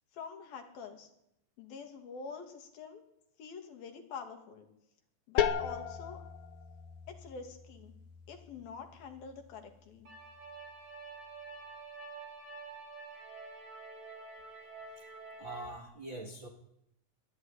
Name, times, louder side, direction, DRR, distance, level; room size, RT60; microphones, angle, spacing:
voice 1, 0.1-1.1 1.6-3.0 3.4-4.7 5.3-6.2 7.1-8.0 8.3-10.1, left 5 dB, 75° left, 5 dB, 4.4 m, -46 dB
sound 1, 5.4-10.9, left 9 dB, 60° left, 2.1 m, -38 dB
sound 2, 10.1-15.7, right 4 dB, 80° right, 7.3 m, -48 dB
voice 2, 15.4-16.5, right 2 dB, 35° right, 2 dB, 2.5 m, -44 dB
22.5 x 14.5 x 10.0 m, 0.80 s
omnidirectional pair, 4.2 m